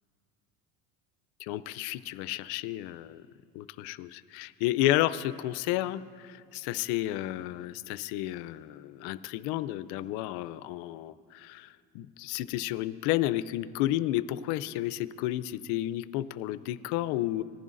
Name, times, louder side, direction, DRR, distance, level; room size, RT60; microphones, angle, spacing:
voice 1, 1.4-3.2 3.5-17.4, left 14 dB, 65° left, 16 dB, 0.5 m, -31 dB
19.5 x 10.5 x 2.5 m, 2.2 s
supercardioid pair, 110°, 42 cm